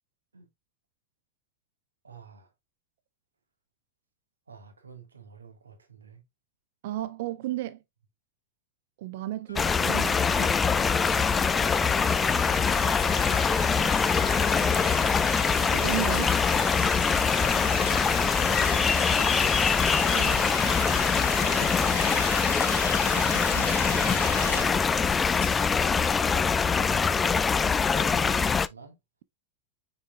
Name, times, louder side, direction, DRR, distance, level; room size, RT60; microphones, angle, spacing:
voice 1, 2.0-2.5 4.5-6.2 21.8-23.0 23.5-25.2 25.7-29.0, right 5 dB, 75° right, 1.8 m, -49 dB
voice 2, 6.8-7.8 9.0-10.6 15.7-16.7 20.1-20.5 23.2-23.7, right 14 dB, 50° right, 0.5 m, -35 dB
sound 1, 9.5-26.3, left 3 dB, 80° left, 0.4 m, -37 dB
sound 2, 9.6-28.7, left 5 dB, 15° left, 0.4 m, -24 dB
sound 3, 12.9-13.2 13.9-14.1 15.0-15.3 16.1-16.3 16.9-17.1 17.8-18.1 18.6-18.7 19.1-19.3 19.9-20.1 20.7-20.9 21.8-21.9 22.6-22.8 23.6-23.7 24.5-24.7 25.4-25.7 26.4-26.6 27.0-27.1, left 8 dB, 55° left, 2.0 m, -47 dB
6.6 x 6.5 x 2.4 m
figure-of-eight pair, 90°, 0 cm